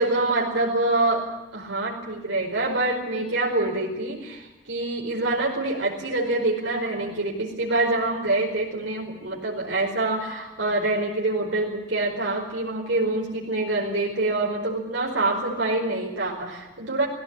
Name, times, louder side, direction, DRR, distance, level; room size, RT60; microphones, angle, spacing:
voice 1, 0.0-17.1, right 2 dB, 75° right, -2 dB, 5.1 m, -26 dB
20.0 x 17.5 x 10.0 m, 1.0 s
head